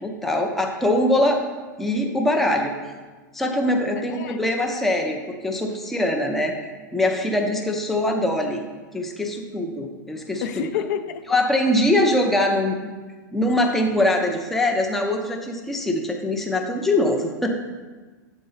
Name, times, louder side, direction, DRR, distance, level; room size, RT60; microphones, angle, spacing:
voice 1, 0.0-1.4 1.8-2.7 3.3-6.5 6.9-8.6 8.9-10.7 11.3-12.9 13.3-17.5, left 1 dB, ahead, 2 dB, 0.4 m, -22 dB
voice 2, 3.9-4.4 10.4-11.2, left 9 dB, 60° left, 9 dB, 0.5 m, -29 dB
8.3 x 4.0 x 3.9 m, 1.3 s
supercardioid pair, 155°, 11 cm